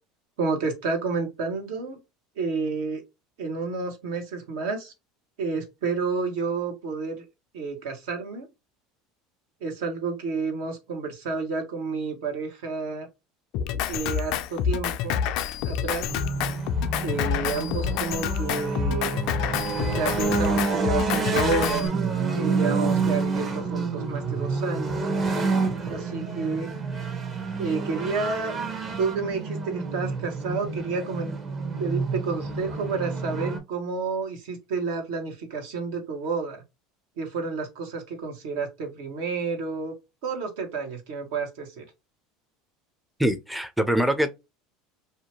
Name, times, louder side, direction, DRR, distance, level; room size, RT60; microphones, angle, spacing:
voice 1, 0.4-2.0 2.4-3.0 3.4-4.9 5.4-7.2 7.5-8.5 9.6-13.1 13.9-15.3 15.6-16.0 17.0-19.2 20.0-22.1 22.3-25.0 25.9-26.7 27.6-28.6 29.0-31.4 31.8-36.6 37.2-39.9 40.2-41.8, right 4 dB, 75° right, 1.0 m, -30 dB
Drum kit, 13.5-21.9, left 8 dB, 65° left, 0.3 m, -28 dB
sound 1, 16.1-33.6, right 4 dB, 35° right, 0.8 m, -28 dB
voice 2, 43.2-44.3, right 1 dB, ahead, 0.4 m, -23 dB
2.7 x 2.2 x 2.8 m
hypercardioid pair, 90°, 0 cm